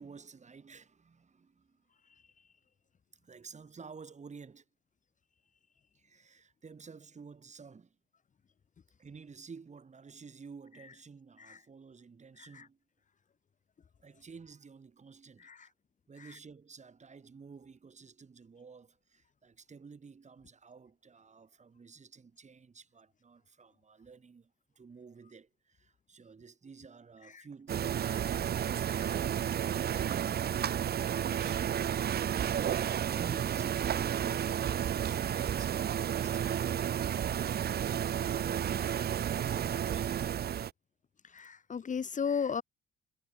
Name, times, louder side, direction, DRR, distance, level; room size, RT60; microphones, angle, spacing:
voice 1, 0.0-1.8 3.1-4.6 5.9-8.0 9.0-12.8 14.0-15.7 16.1-37.0 37.6-40.5, right 5 dB, 35° right, 6.5 m, -52 dB
sound 1, 27.7-40.7, right 9 dB, 55° right, 1.0 m, -32 dB
voice 2, 41.2-42.6, left 6 dB, 40° left, 1.2 m, -37 dB
cardioid pair, 90°, 20 cm